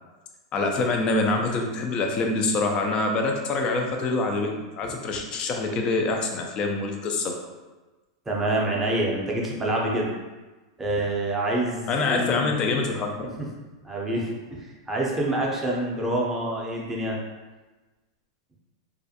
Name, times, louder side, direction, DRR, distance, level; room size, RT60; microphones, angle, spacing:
voice 1, 0.5-7.3 11.9-13.3, left 3 dB, 35° left, 3 dB, 0.4 m, -25 dB
voice 2, 8.3-10.1 10.8-12.5 13.4-13.5 13.8-17.2, right 1 dB, 15° right, -3 dB, 0.6 m, -27 dB
2.4 x 2.1 x 2.7 m, 1.2 s
hypercardioid pair, 115°, 2 cm